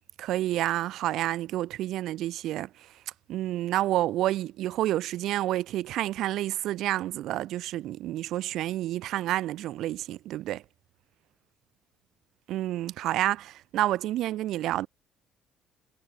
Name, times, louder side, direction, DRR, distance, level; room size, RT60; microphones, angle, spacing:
voice 1, 0.2-2.7 3.3-10.6 12.5-14.9, right 14 dB, 70° right, 1.5 m, -29 dB
cardioid pair, 170°, 0 cm